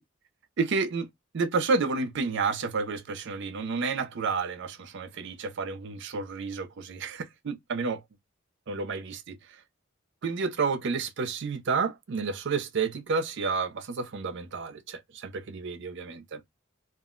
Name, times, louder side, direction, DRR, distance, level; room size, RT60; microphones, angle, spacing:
voice 1, 0.6-1.1 1.3-8.0 8.7-9.4 10.2-16.4, right 4 dB, 60° right, 0.5 m, -30 dB
2.4 x 2.0 x 3.6 m
head